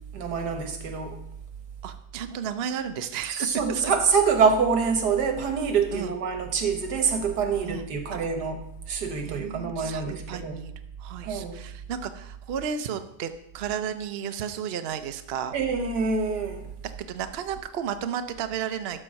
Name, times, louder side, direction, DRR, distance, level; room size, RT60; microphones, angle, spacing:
voice 1, 0.1-1.2 3.3-8.6 8.9-10.6 11.2-11.6 15.5-16.7, right 5 dB, 85° right, 5 dB, 1.8 m, -25 dB
voice 2, 1.8-3.9 5.9-6.1 7.6-7.9 9.2-10.7 11.0-15.5 16.8-19.0, right 8 dB, 55° right, 9 dB, 0.7 m, -33 dB
12.5 x 4.4 x 6.4 m, 0.80 s
omnidirectional pair, 1.7 m